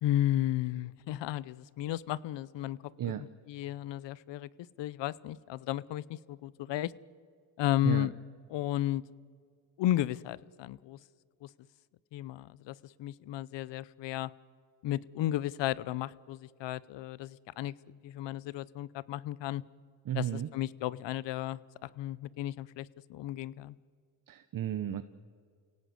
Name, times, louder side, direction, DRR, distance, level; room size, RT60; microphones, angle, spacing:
voice 1, 0.0-2.8 3.0-3.1 3.5-4.5 4.8-6.9 7.6-8.1 8.5-9.0 9.8-11.0 11.4-11.5 12.1-14.3 14.8-19.6 20.1-23.7, left 13 dB, 65° left, 21 dB, 0.8 m, -34 dB
voice 2, 20.0-20.5 24.3-25.0, right 11 dB, 45° right, 11 dB, 0.9 m, -33 dB
29.5 x 17.5 x 8.1 m, 2.2 s
cardioid pair, 115°, 46 cm